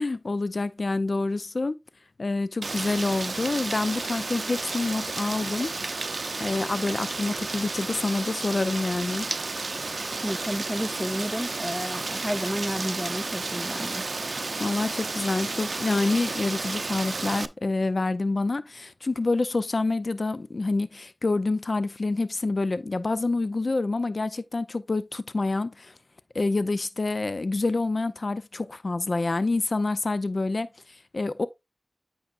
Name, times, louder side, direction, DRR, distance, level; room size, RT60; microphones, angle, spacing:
voice 1, 0.0-1.8 2.2-5.7 6.4-9.3 14.6-25.9 26.3-31.5, left 3 dB, 70° left, 0.4 m, -27 dB
Rain, 2.6-17.5, right 3 dB, 80° right, 0.5 m, -32 dB
voice 2, 10.2-14.0, equal, ahead, 0.5 m, -31 dB
8.5 x 5.6 x 2.4 m
wide cardioid pair, 40°, 0 cm